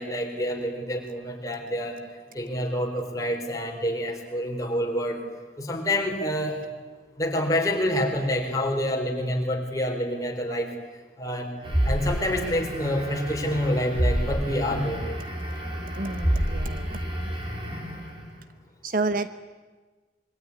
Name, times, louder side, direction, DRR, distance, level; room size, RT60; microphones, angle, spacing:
voice 1, 0.0-2.0 2.3-5.2 5.6-6.7 7.2-10.7 11.2-11.5 11.8-15.1, equal, 20° left, 2 dB, 4.2 m, -27 dB
sound 1, 11.6-18.3, equal, 30° right, 5.1 m, -29 dB
voice 2, 15.9-17.0 18.8-19.3, right 3 dB, 50° right, 11 dB, 1.0 m, -29 dB
26.0 x 23.0 x 9.7 m, 1.3 s
head